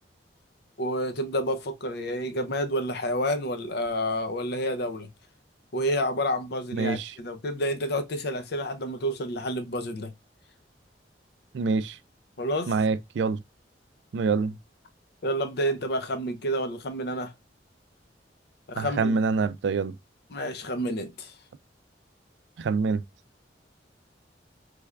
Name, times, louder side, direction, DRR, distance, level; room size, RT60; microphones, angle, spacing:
voice 1, 0.8-5.1 5.7-10.1 12.4-12.7 15.2-17.3 18.7-19.1 20.3-21.3, equal, 65° left, 0.6 m, -29 dB
voice 2, 6.7-7.1 11.5-12.0 12.7-13.4 14.1-14.6 18.8-20.0 22.6-23.0, right 4 dB, 80° right, 0.4 m, -26 dB
3.3 x 3.3 x 2.3 m
head